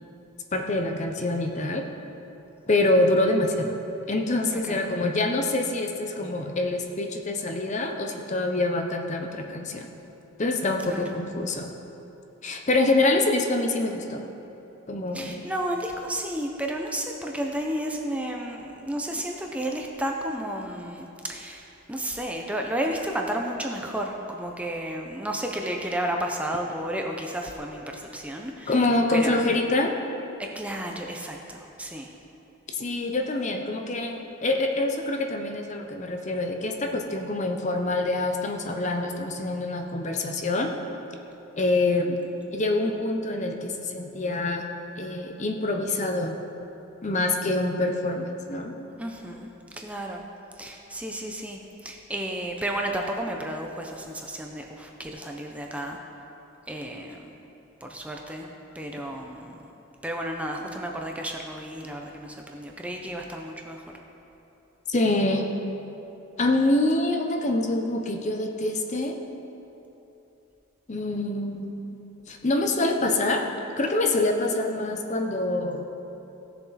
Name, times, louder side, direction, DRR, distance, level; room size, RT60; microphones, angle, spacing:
voice 1, 0.5-1.9 2.7-3.7 4.1-9.9 10.4-11.7 12.4-14.3 14.9-15.3 28.7-29.9 32.8-40.7 41.6-42.2 42.5-44.7 45.0-46.4 47.0-48.8 64.9-65.5 66.4-69.2 70.9-71.8 72.3-73.5 73.8-75.9, left 2 dB, 35° left, 4 dB, 0.7 m, -25 dB
voice 2, 4.5-4.8 10.8-11.1 15.1-28.8 29.1-29.4 30.4-32.1 48.9-50.2 50.5-56.0 56.7-57.3 57.8-58.5 58.7-59.6 60.0-63.9, right 1 dB, 5° right, 1 dB, 0.6 m, -32 dB
17.0 x 6.9 x 4.2 m, 3.0 s
head